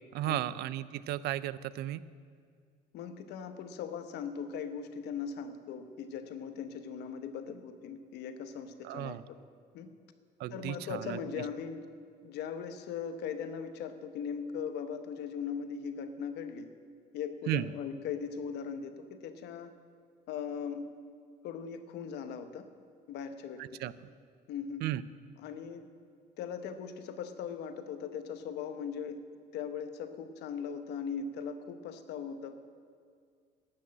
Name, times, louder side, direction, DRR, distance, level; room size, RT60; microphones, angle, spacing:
voice 1, 0.1-2.0 8.8-9.2 10.4-11.4 17.5-17.7 23.6-23.9 24.8-25.0, right 14 dB, 75° right, 17 dB, 0.4 m, -34 dB
voice 2, 2.9-9.2 9.7-9.9 10.5-11.8 12.2-16.7 17.1-19.7 20.3-20.9 21.4-22.7 23.1-23.8 24.5-24.8 25.4-25.8 26.4-29.2 29.5-32.6, left 7 dB, 80° left, 9 dB, 0.9 m, -39 dB
12.5 x 6.3 x 8.6 m, 2.1 s
cardioid pair, 110°, 17 cm